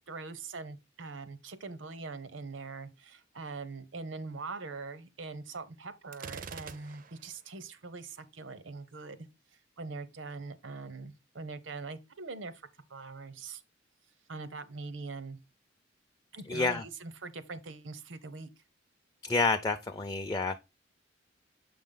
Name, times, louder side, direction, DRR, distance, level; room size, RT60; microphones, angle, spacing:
voice 1, 0.0-9.3 9.8-13.6 14.3-15.4 16.3-18.5, right 3 dB, 85° right, 0.8 m, -42 dB
Gunshot gunfire, 6.1-7.4, right 6 dB, 45° right, 0.5 m, -44 dB
voice 2, 16.5-16.8 19.2-20.6, left 3 dB, 20° left, 0.5 m, -29 dB
6.9 x 5.2 x 3.8 m
head